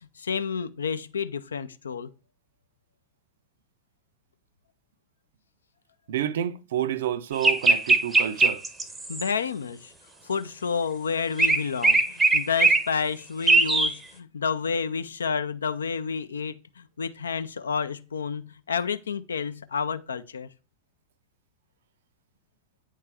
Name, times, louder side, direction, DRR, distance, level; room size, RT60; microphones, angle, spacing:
voice 1, 0.2-2.1 9.1-9.9 10.2-20.5, left 6 dB, 70° left, 0.4 m, -30 dB
voice 2, 6.1-8.6, right 10 dB, 60° right, 0.4 m, -29 dB
sound 1, 7.4-9.3 11.4-12.9 13.5-13.9, right 3 dB, 10° right, 0.6 m, -20 dB
8.6 x 3.3 x 3.4 m
figure-of-eight pair, 90°, 0 cm